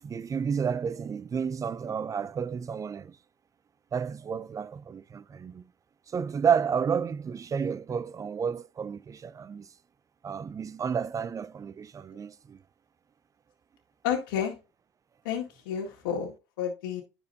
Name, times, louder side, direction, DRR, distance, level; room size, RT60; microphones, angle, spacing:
voice 1, 0.0-3.2 3.9-5.6 6.1-9.7 10.2-12.6, right 7 dB, 30° right, 0.5 m, -31 dB
voice 2, 14.0-14.6 15.2-17.0, left 8 dB, 75° left, 1.9 m, -31 dB
10.5 x 4.5 x 2.7 m
hypercardioid pair, 75°, 11 cm